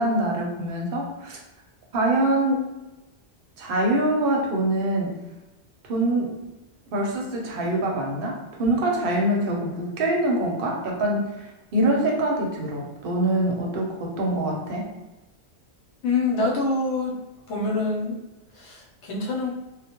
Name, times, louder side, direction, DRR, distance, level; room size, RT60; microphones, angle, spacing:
voice 1, 0.0-1.4 1.9-2.7 3.6-5.2 5.8-6.4 6.9-14.9, right 1 dB, 60° right, -1 dB, 0.7 m, -24 dB
voice 2, 16.0-17.2 17.5-18.2 18.5-19.5, left 3 dB, 80° left, -2 dB, 1.0 m, -25 dB
2.2 x 2.0 x 2.8 m, 1.0 s
omnidirectional pair, 1.2 m